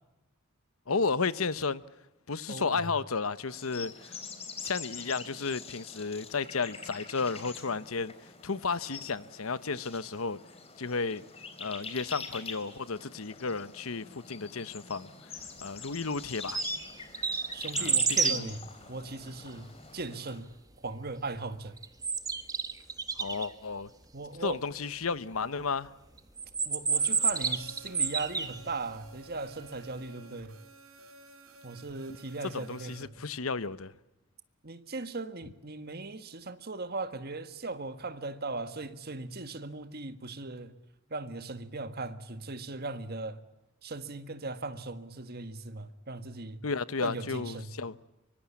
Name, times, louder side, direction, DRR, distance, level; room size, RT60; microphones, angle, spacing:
voice 1, 0.9-1.8 2.3-4.1 4.6-8.1 8.4-10.4 10.8-11.2 11.6-15.1 15.6-16.6 17.8-18.0 18.2-18.5 23.2-23.9 24.4-25.9 32.5-33.9 46.6-48.0, left 4 dB, 80° left, 1.0 m, -33 dB
voice 2, 2.5-2.9 17.5-18.6 18.9-21.8 24.1-24.6 26.6-30.5 31.6-33.1 34.6-40.8 41.1-43.4 43.8-46.6 47.0-47.7, right 3 dB, 45° right, 1.6 m, -38 dB
sound 1, 3.5-20.4, left 5 dB, 30° left, 3.8 m, -45 dB
sound 2, 16.3-16.9 17.1-18.4 21.8-23.5 26.4-28.6, right 5 dB, 15° right, 1.5 m, -29 dB
sound 3, 26.9-33.0, right 2 dB, 75° right, 2.4 m, -53 dB
24.5 x 24.0 x 8.5 m
head